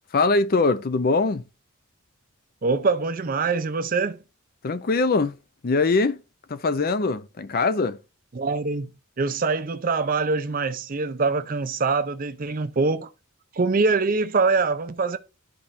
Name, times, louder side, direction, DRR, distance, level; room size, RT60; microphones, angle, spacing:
voice 1, 0.1-1.4 4.6-5.3 5.6-6.2 6.5-8.0, left 3 dB, 45° left, 0.5 m, -22 dB
voice 2, 2.6-4.2 8.3-8.9 9.2-13.1 13.6-15.2, right 4 dB, 40° right, 0.5 m, -24 dB
12.0 x 4.2 x 2.6 m
head